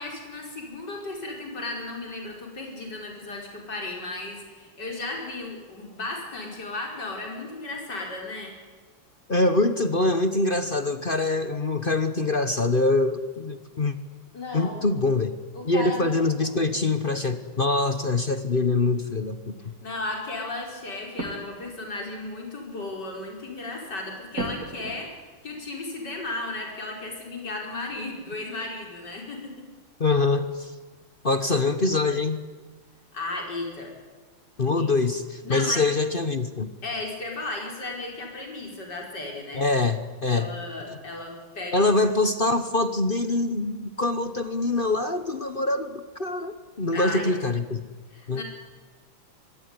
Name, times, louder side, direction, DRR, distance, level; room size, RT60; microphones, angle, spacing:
voice 1, 0.0-8.5 14.3-14.9 15.5-16.6 19.8-29.5 33.1-33.9 34.8-34.9 35.4-35.9 36.8-39.6 40.3-41.9 46.9-47.3 48.1-48.4, left 2 dB, 50° left, 1 dB, 5.7 m, -35 dB
voice 2, 9.3-13.9 14.5-15.3 15.6-19.6 30.0-30.7 31.2-32.4 34.6-36.7 39.5-40.5 41.7-47.8 48.3-48.4, left 2 dB, 35° left, 11 dB, 1.0 m, -24 dB
sound 1, 21.2-21.7 22.1-22.2 22.5-22.6 23.1-23.3 24.3-25.3 27.4-27.5 27.9-28.5 28.9-29.0, right 2 dB, 40° right, 3.0 m, -36 dB
25.5 x 21.5 x 9.7 m, 1.4 s
omnidirectional pair, 2.3 m